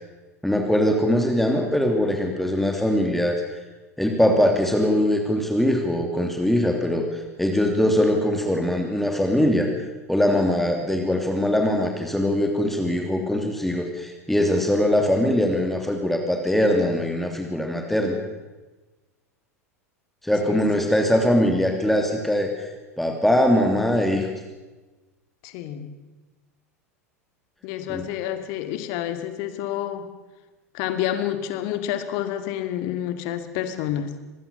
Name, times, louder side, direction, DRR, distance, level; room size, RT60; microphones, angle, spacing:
voice 1, 0.4-3.4 4.0-9.7 10.1-18.2 20.2-22.7 23.0-24.3 27.9-28.0, left 1 dB, 5° left, 3 dB, 3.0 m, -22 dB
voice 2, 20.4-20.8 25.4-26.0 27.6-30.1 30.7-34.2, left 11 dB, 50° left, 10 dB, 2.4 m, -29 dB
25.5 x 20.5 x 7.0 m, 1.2 s
figure-of-eight pair, 85°, 8 cm